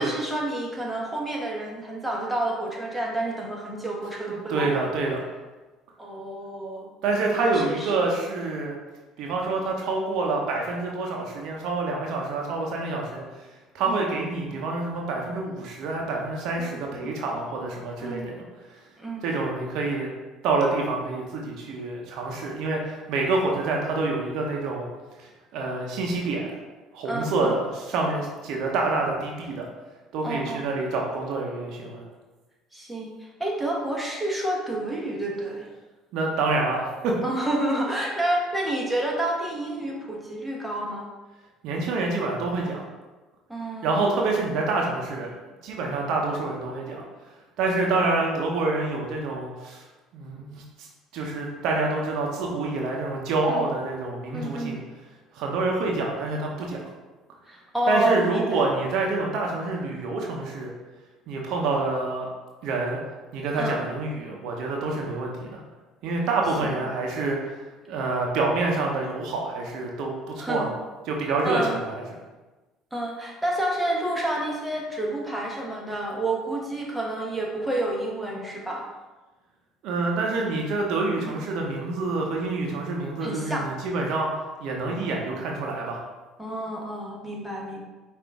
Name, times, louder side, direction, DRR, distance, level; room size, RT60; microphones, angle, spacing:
voice 1, 0.0-4.8 6.0-6.9 7.4-7.9 13.9-14.0 16.6-17.1 18.0-18.3 19.0-19.3 27.0-27.5 30.2-30.6 32.7-35.7 37.2-41.1 43.5-44.3 53.5-53.7 54.3-54.8 57.5-58.6 63.6-63.8 66.6-66.8 70.4-70.7 71.2-71.8 72.9-78.8 81.2-81.4 83.2-83.7 86.4-87.8, right 1 dB, 5° right, -3 dB, 1.2 m, -29 dB
voice 2, 4.5-5.2 7.0-8.8 9.2-13.2 13.7-18.4 19.2-20.1 20.4-24.9 25.2-26.6 26.9-29.7 30.1-32.0 36.1-37.2 41.6-42.8 43.8-45.3 45.6-47.0 47.6-49.8 50.1-50.9 51.1-54.8 55.3-56.8 57.9-60.7 61.3-62.3 62.6-63.0 63.3-65.6 66.0-67.6 67.9-70.7 71.0-72.0 79.8-84.3 84.6-86.0, right 3 dB, 65° right, 0 dB, 0.7 m, -27 dB
5.1 x 2.6 x 3.5 m, 1.2 s
hypercardioid pair, 75°, 0 cm